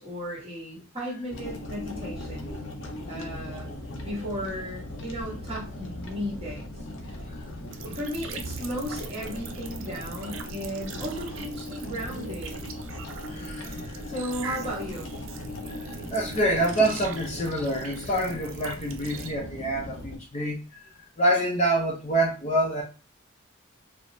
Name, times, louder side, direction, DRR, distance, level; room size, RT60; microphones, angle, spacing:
voice 1, 0.0-2.5 3.1-3.7 4.0-6.7 7.1-7.2 7.8-12.6 14.1-15.1, equal, 25° right, 1.4 m, -35 dB
sound 1, 1.3-20.2, left 1 dB, 65° left, 0.7 m, -38 dB
sound 2, 7.7-19.3, right 6 dB, 70° right, 0.5 m, -43 dB
voice 2, 13.3-14.1 15.7-20.9 21.2-22.8, right 1 dB, 30° left, 0.5 m, -27 dB
4.6 x 2.1 x 2.6 m
head